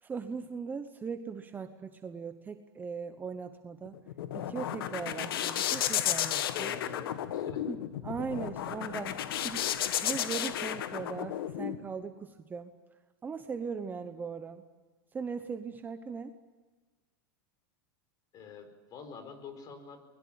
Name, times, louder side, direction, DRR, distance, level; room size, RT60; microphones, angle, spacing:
voice 1, 0.0-4.0 4.3-6.8 7.6-12.7 13.2-14.6 15.1-16.3, right 5 dB, 15° right, 9 dB, 1.0 m, -39 dB
sound 1, 3.9-11.8, left 11 dB, 80° left, 1.6 m, -33 dB
voice 2, 6.4-7.9 18.3-20.0, left 5 dB, 30° left, 8 dB, 4.7 m, -46 dB
sound 2, 8.0-11.6 12.0-12.2, left 7 dB, 55° left, 2.2 m, -51 dB
24.0 x 21.0 x 8.9 m, 1.3 s
supercardioid pair, 140°, 12 cm